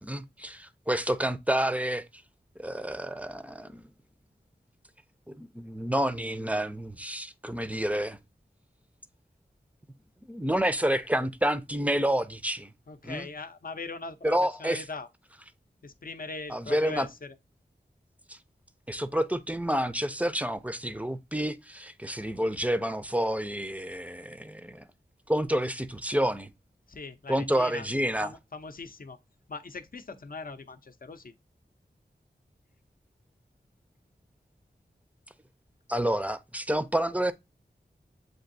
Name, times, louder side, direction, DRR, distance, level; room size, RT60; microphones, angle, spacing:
voice 1, 0.0-2.1 2.6-3.9 5.3-8.2 10.2-12.7 13.0-13.3 14.2-14.8 16.5-17.1 18.3-18.4 18.9-24.9 25.3-26.5 27.3-28.4 35.9-37.3, right 1 dB, 10° right, 0.5 m, -29 dB
voice 2, 12.9-15.1 15.8-17.3 26.9-27.9 28.2-29.2 29.5-31.3, left 3 dB, 50° left, 0.6 m, -40 dB
7.7 x 2.6 x 2.6 m
wide cardioid pair, 50°, 18 cm